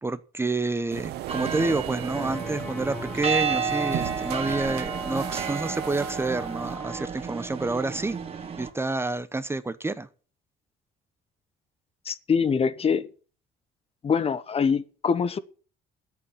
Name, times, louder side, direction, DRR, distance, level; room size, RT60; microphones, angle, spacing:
voice 1, 0.0-8.2 8.6-10.1, right 3 dB, 15° right, 0.9 m, -29 dB
sound 1, 0.9-6.8, right 15 dB, 75° right, 0.7 m, -38 dB
sound 2, 1.3-8.7, right 6 dB, 35° right, 2.3 m, -31 dB
sound 3, 2.0-7.1, equal, 10° left, 1.0 m, -39 dB
voice 2, 12.1-13.1 14.0-15.4, left 6 dB, 35° left, 1.0 m, -24 dB
10.0 x 8.4 x 9.9 m
cardioid pair, 110°, 17 cm